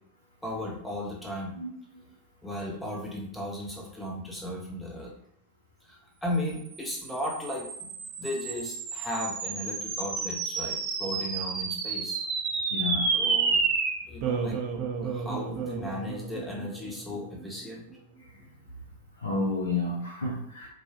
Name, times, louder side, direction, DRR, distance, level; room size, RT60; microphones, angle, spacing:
voice 1, 0.4-1.5 2.4-5.1 5.8-7.9 8.2-12.2 13.1-13.6 14.0-14.6 15.0-17.9, left 1 dB, 5° left, -2 dB, 0.7 m, -35 dB
sound 1, 6.7-17.4, right 5 dB, 40° right, 0.6 m, -31 dB
voice 2, 12.7-13.1 19.2-20.7, left 3 dB, 75° left, -1 dB, 0.6 m, -30 dB
4.1 x 2.3 x 2.9 m, 0.72 s
figure-of-eight pair, 90°, 0 cm